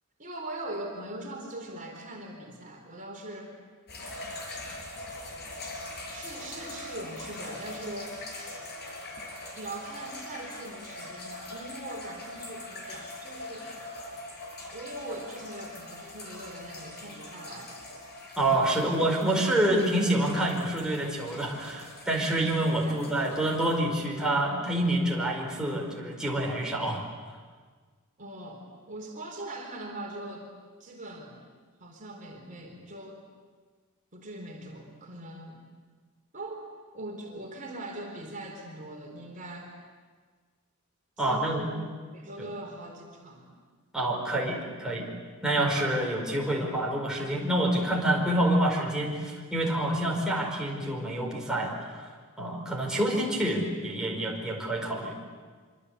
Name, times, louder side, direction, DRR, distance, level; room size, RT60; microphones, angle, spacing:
voice 1, 0.2-3.6 6.1-8.2 9.5-13.7 14.7-17.8 22.6-23.0 28.2-30.5 30.8-31.4 31.8-33.3 34.1-35.6 36.3-39.7 41.2-41.8 42.1-43.6, right 1 dB, 35° right, 1 dB, 4.1 m, -41 dB
sound 1, 3.9-23.8, left 2 dB, 50° left, 6.0 m, -42 dB
voice 2, 18.4-27.0 41.2-41.7 43.9-45.1 45.4-52.1 52.4-55.2, right 1 dB, 5° right, -3 dB, 5.0 m, -27 dB
25.5 x 25.5 x 8.4 m, 1.5 s
head